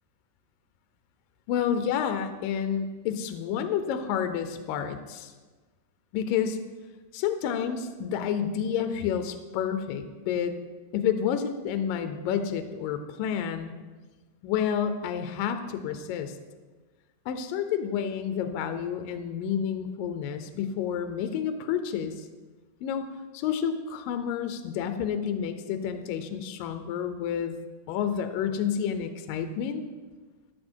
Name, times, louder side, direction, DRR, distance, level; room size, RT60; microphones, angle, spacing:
voice 1, 1.5-5.3 6.1-6.6 7.1-10.6 10.9-13.7 14.4-16.4 17.3-22.3 22.8-23.1 23.3-27.6 27.9-29.8, left 8 dB, 80° left, 8 dB, 2.4 m, -29 dB
15.5 x 11.5 x 4.5 m, 1.3 s
omnidirectional pair, 4.1 m